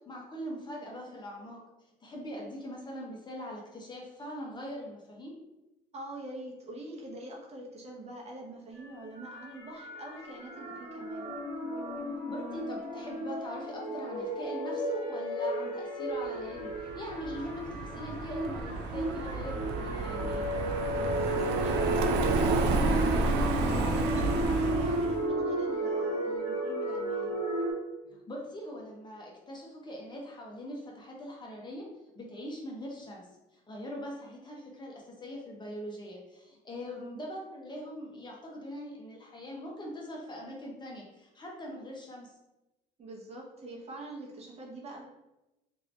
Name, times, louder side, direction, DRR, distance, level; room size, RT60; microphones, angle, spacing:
voice 1, 0.0-1.6 2.0-5.3 12.3-20.5 28.1-31.9 32.1-33.3 33.5-42.3, equal, 25° left, -1 dB, 0.7 m, -42 dB
voice 2, 5.9-11.3 21.0-27.3 36.9-37.2 43.0-45.0, right 2 dB, 40° right, -2 dB, 0.8 m, -44 dB
sound 1, 8.8-27.7, right 1 dB, 50° left, 1.4 m, -33 dB
Car passing by, 16.7-25.2, right 3 dB, 90° right, 0.4 m, -31 dB
2.8 x 2.6 x 3.2 m, 0.98 s
cardioid pair, 110°, 17 cm